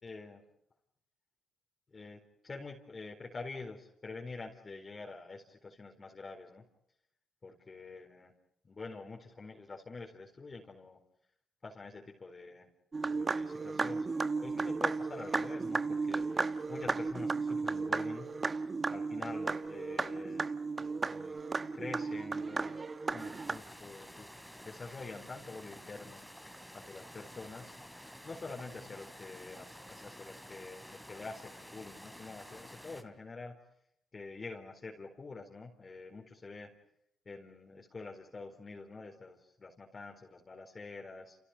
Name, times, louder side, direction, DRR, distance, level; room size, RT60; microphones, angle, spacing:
voice 1, 0.0-0.4 1.9-6.6 7.4-8.3 8.6-11.0 11.6-12.7 13.1-16.3 16.7-18.3 18.9-20.5 21.0-21.4 21.7-22.8 23.1-24.3 24.6-26.2 26.7-27.8 28.2-33.6 34.1-36.7 37.2-41.4, left 3 dB, 30° left, 0 dB, 4.3 m, -47 dB
sound 1, 12.9-23.6, right 4 dB, 30° right, 1.2 m, -34 dB
sound 2, 23.2-33.0, equal, ahead, 3.3 m, -51 dB
30.0 x 29.5 x 5.1 m, 0.79 s
cardioid pair, 90°, 0 cm